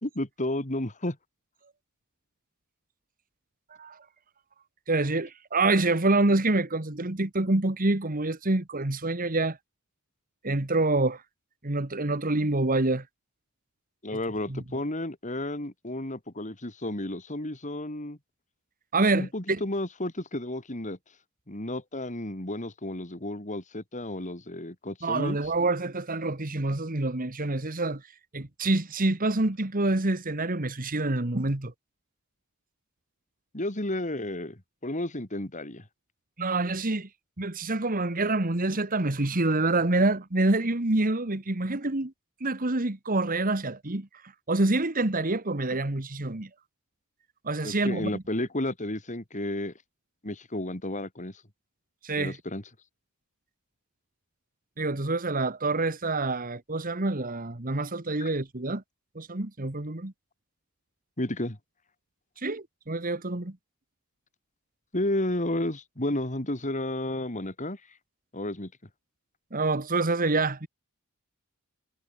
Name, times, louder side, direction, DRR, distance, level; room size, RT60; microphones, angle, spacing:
voice 1, 0.0-1.2 14.0-18.2 19.1-21.0 21.5-25.4 33.5-35.8 47.6-49.7 50.2-51.3 52.2-52.6 58.2-58.3 61.2-61.6 64.9-67.8 68.3-68.7, left 1 dB, 35° left, 3.1 m, -32 dB
voice 2, 4.9-9.6 10.4-11.2 11.6-13.0 14.5-14.6 18.9-19.6 25.0-28.0 28.3-31.7 36.4-37.1 37.4-42.1 42.4-46.5 47.4-48.2 52.0-52.4 54.8-58.8 59.1-60.1 62.4-63.6 69.5-70.7, right 2 dB, 40° right, 1.6 m, -27 dB
head